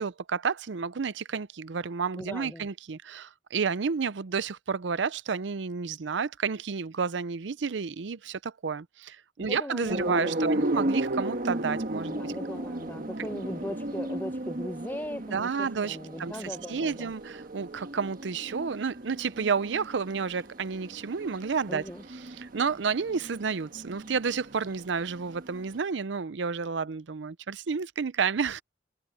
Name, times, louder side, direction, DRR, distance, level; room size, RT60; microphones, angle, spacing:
voice 1, 0.0-12.3 15.3-28.6, right 5 dB, 80° right, 0.6 m, -31 dB
voice 2, 2.2-2.6 9.5-10.8 12.1-17.1 21.7-22.0, left 1 dB, 10° left, 0.8 m, -39 dB
sound 1, 9.9-25.8, right 1 dB, 50° right, 1.5 m, -35 dB
head